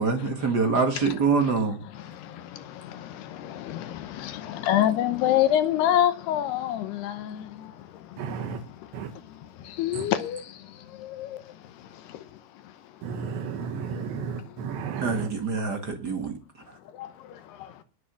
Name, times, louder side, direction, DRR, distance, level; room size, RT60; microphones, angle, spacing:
voice 1, 0.0-1.8 15.0-16.3, right 4 dB, 60° right, 1.0 m, -25 dB
voice 2, 2.0-8.4 8.8-8.9 9.3-11.5 11.9-12.2 16.9-17.7, left 11 dB, 75° left, 2.9 m, -28 dB
voice 3, 8.2-8.6 8.9-9.1 9.9-10.1 13.0-15.3, right 6 dB, 85° right, 3.8 m, -33 dB
19.5 x 6.8 x 6.2 m
omnidirectional pair, 5.0 m